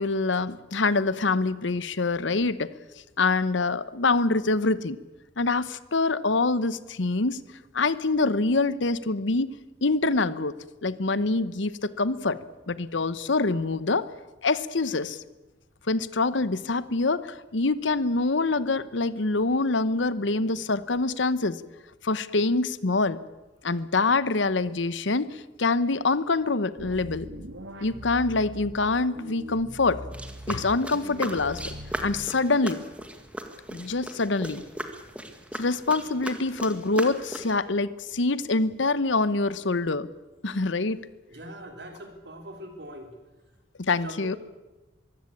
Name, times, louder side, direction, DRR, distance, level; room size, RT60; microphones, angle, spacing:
voice 1, 0.0-2.7 3.2-5.0 5.4-7.4 7.7-9.5 9.8-12.4 12.7-14.1 14.4-15.2 15.9-21.6 22.0-23.2 23.6-27.3 27.8-30.0 30.5-31.7 32.0-32.8 33.7-34.6 35.5-40.1 40.4-41.0 43.8-44.4, left 3 dB, 75° left, 16 dB, 1.0 m, -25 dB
sound 1, 26.8-28.7 29.2-30.5 30.9-32.5, equal, 80° right, 2.7 m, -41 dB
sound 2, 30.1-37.6, right 1 dB, 5° right, 1.8 m, -38 dB
voice 2, 41.3-43.2 44.0-44.4, equal, 60° right, 5 dB, 3.6 m, -42 dB
23.5 x 15.5 x 8.7 m, 1.1 s
head